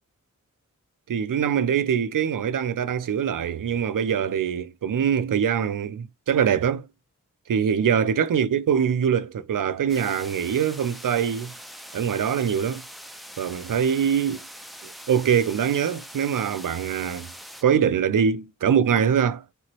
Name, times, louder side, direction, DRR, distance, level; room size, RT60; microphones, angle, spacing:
voice 1, 1.1-6.9 7.5-11.5 11.9-12.8 13.4-14.4 14.8-17.3 17.6-19.4, right 8 dB, 90° right, 0.5 m, -23 dB
sound 1, 9.9-17.6, equal, ahead, 0.6 m, -43 dB
3.4 x 3.0 x 2.8 m
wide cardioid pair, 55°, 31 cm